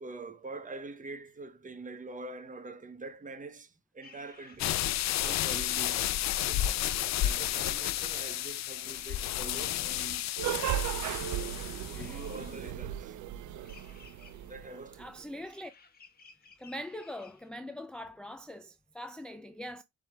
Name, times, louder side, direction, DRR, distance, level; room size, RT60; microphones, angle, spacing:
voice 1, 0.0-4.9 5.2-6.1 6.5-6.7 7.2-10.8 11.2-13.2 14.4-15.4, right 3 dB, 25° right, 0.8 m, -45 dB
sound 1, 4.6-12.5, left 13 dB, 65° left, 0.5 m, -32 dB
sound 2, 8.5-17.5, left 5 dB, 30° left, 1.2 m, -58 dB
sound 3, 10.4-15.0, right 11 dB, 75° right, 0.5 m, -36 dB
voice 2, 15.0-15.7 16.6-19.8, equal, 5° left, 0.4 m, -42 dB
6.9 x 3.3 x 2.3 m
cardioid pair, 90°, 30 cm